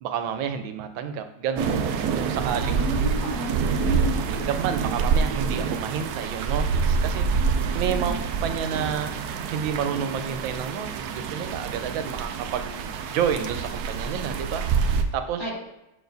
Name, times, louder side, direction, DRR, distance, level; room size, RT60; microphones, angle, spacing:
voice 1, 0.0-1.8 2.1-2.8 4.4-7.5 7.7-8.1 8.4-9.1 9.5-14.7 15.1-15.5, right 8 dB, 90° right, 8 dB, 1.4 m, -30 dB
sound 1, 1.6-15.0, right 5 dB, 75° right, 0.9 m, -26 dB
voice 2, 2.6-4.3 8.0-8.2 15.4-15.6, left 1 dB, 55° left, -4 dB, 2.3 m, -32 dB
6.9 x 6.4 x 2.6 m, 0.91 s
omnidirectional pair, 2.1 m